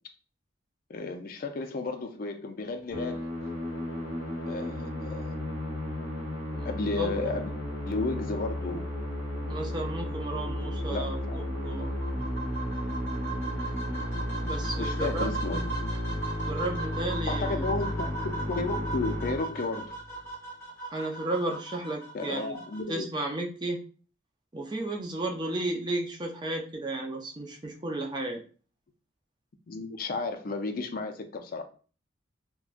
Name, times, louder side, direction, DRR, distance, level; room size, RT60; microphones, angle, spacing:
voice 1, 0.9-3.3 4.5-5.3 6.6-7.5 7.9-8.9 10.9-11.4 14.8-15.7 17.3-20.0 22.1-23.1 29.7-31.6, left 3 dB, 50° left, 0.4 m, -33 dB
Musical instrument, 2.9-20.0, left 1 dB, 40° right, 0.9 m, -33 dB
voice 2, 7.0-7.3 9.4-11.9 14.4-15.3 16.5-17.6 20.9-22.6 22.9-23.8 24.5-28.4, right 2 dB, 25° right, 0.5 m, -33 dB
sound 1, 11.8-22.8, right 3 dB, 15° left, 1.2 m, -38 dB
3.5 x 2.2 x 2.5 m
head